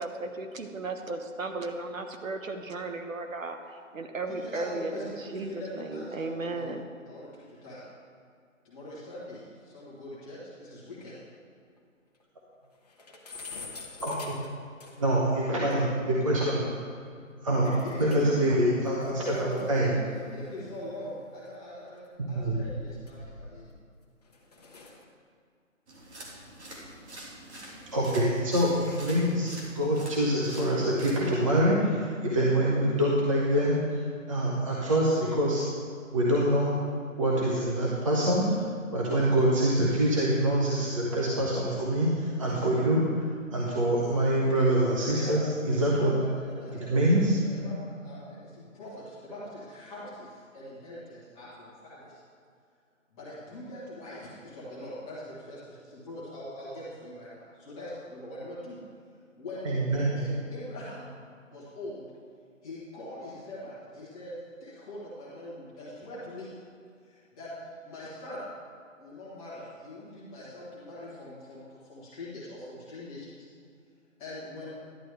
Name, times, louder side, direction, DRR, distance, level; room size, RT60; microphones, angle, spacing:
voice 1, 0.0-6.9, right 3 dB, 75° right, 5 dB, 1.1 m, -35 dB
voice 2, 4.3-6.8 7.0-7.8 8.6-11.2 17.8-18.5 19.2-23.7 45.1-47.1 47.4-52.2 53.1-58.8 59.3-59.7 60.2-61.1 61.5-62.1 62.6-64.3 64.6-66.5 67.0-68.4 69.0-73.5 74.2-74.8, left 1 dB, 10° left, -10 dB, 1.3 m, -42 dB
sound 1, 10.9-11.0 11.3-11.4 11.8-11.9 12.2-12.3 12.6-15.2 15.7-15.8 17.6-18.4 18.7-21.3 22.1-23.8 24.2-25.1, left 3 dB, 30° left, 0.9 m, -47 dB
voice 3, 14.0-14.4 15.0-16.7 17.4-19.9 22.2-22.6 27.9-35.7 36.1-36.7 37.2-38.6 38.9-46.1 46.7-47.4 59.6-60.2, right 1 dB, 25° right, -5 dB, 0.8 m, -25 dB
sound 2, 25.9-31.5, right 1 dB, 55° right, 2.2 m, -46 dB
11.0 x 9.0 x 3.3 m, 2.3 s
hypercardioid pair, 165°, 40 cm